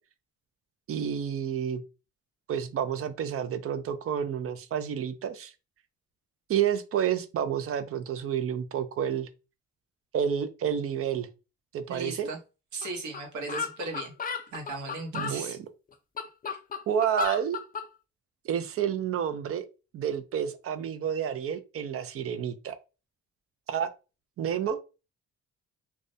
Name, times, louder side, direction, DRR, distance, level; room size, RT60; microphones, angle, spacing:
voice 1, 0.9-1.8 2.5-5.5 6.5-9.3 10.1-11.3 11.7-12.3 15.1-15.6 16.9-17.6 18.4-19.7 19.9-22.7 23.7-23.9 24.4-24.8, right 8 dB, 50° right, 0.4 m, -29 dB
voice 2, 11.9-12.4 12.7-14.1 14.5-15.6, right 3 dB, 70° right, 0.9 m, -36 dB
sound 1, 12.8-12.9 13.1-13.2 13.5-15.4 15.9-17.9, left 6 dB, 30° left, 0.4 m, -33 dB
2.3 x 2.1 x 2.6 m
cardioid pair, 90°, 30 cm